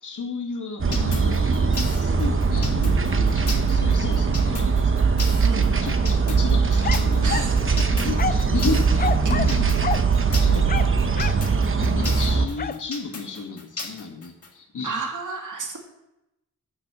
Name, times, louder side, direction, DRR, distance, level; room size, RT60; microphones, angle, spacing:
voice 1, 0.0-5.4 5.7-9.8 10.4-10.9 11.7-15.0, left 4 dB, 70° left, 1 dB, 2.0 m, -33 dB
sound 1, 0.8-12.5, right 5 dB, 40° right, 1.0 m, -21 dB
sound 2, 0.9-14.5, left 3 dB, 45° left, 1.8 m, -35 dB
sound 3, 6.8-7.6 8.2-8.5 9.0-9.6 9.8-10.1 10.7-11.5 12.6-12.8, left 6 dB, 30° left, 0.4 m, -28 dB
voice 2, 7.2-7.6 10.5-10.7 14.8-15.8, right 3 dB, 70° right, 1 dB, 2.4 m, -31 dB
10.5 x 6.7 x 7.6 m, 0.89 s
wide cardioid pair, 110°, 32 cm